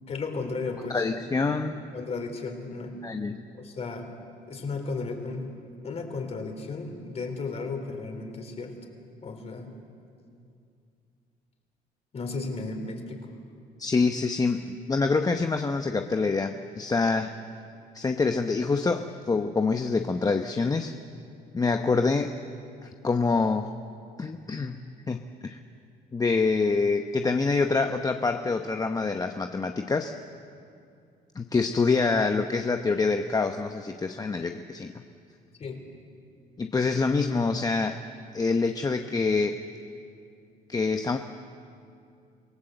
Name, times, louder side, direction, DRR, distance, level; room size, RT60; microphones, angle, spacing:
voice 1, 0.1-1.0 1.9-3.0 3.5-4.1 4.5-5.6 5.8-8.8 9.2-9.7 12.1-13.3 35.6-35.8, left 3 dB, 40° left, 4 dB, 3.7 m, -34 dB
voice 2, 0.9-1.9 3.0-3.4 13.8-17.3 17.9-20.9 21.5-22.4 23.0-23.7 24.2-25.6 26.1-30.1 31.3-34.9 36.6-38.0 38.3-39.6 40.7-41.2, left 4 dB, 20° left, 6 dB, 0.9 m, -26 dB
26.5 x 17.5 x 8.0 m, 2.4 s
cardioid pair, 110°, 17 cm